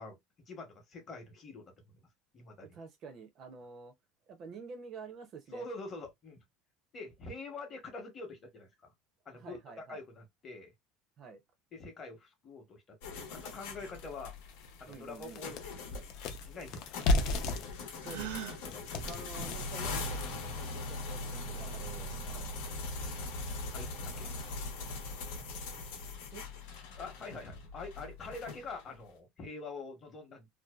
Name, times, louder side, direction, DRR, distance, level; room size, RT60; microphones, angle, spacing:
voice 1, 0.0-2.1 2.3-2.8 5.5-6.4 6.9-8.9 9.3-10.7 11.7-14.3 14.8-15.8 16.5-16.8 18.6-18.8 21.6-21.9 22.2-22.6 23.7-24.3 27.0-30.5, left 3 dB, 25° left, 0.8 m, -46 dB
voice 2, 2.6-3.9 4.3-5.6 9.3-10.0 11.2-11.4 14.9-15.4 18.0-18.5 18.9-22.1 24.1-24.4 26.3-26.4, right 4 dB, 35° right, 0.5 m, -48 dB
sound 1, 13.0-29.0, left 3 dB, 85° left, 0.9 m, -41 dB
sound 2, 13.4-13.5 14.0-14.1 14.5-20.5, left 2 dB, 50° left, 0.5 m, -35 dB
Gasp, 18.0-18.6, right 11 dB, 80° right, 0.6 m, -39 dB
2.6 x 2.2 x 2.2 m
cardioid pair, 170°, 0 cm